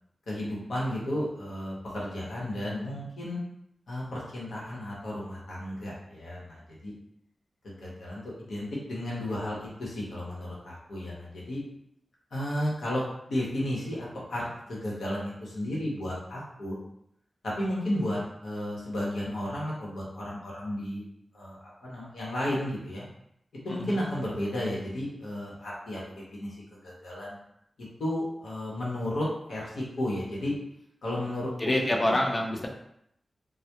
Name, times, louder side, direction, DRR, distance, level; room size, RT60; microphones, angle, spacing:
voice 1, 0.3-3.4 3.9-6.9 7.6-11.6 12.3-13.0 13.3-16.8 17.4-21.0 21.3-23.0 23.5-27.4 27.8-30.5 31.0-31.5 32.0-32.2, left 1 dB, 85° left, -5 dB, 0.8 m, -33 dB
voice 2, 31.6-32.7, left 1 dB, 40° left, 0 dB, 0.5 m, -26 dB
2.2 x 2.0 x 2.8 m, 0.75 s
cardioid pair, 45°, 0 cm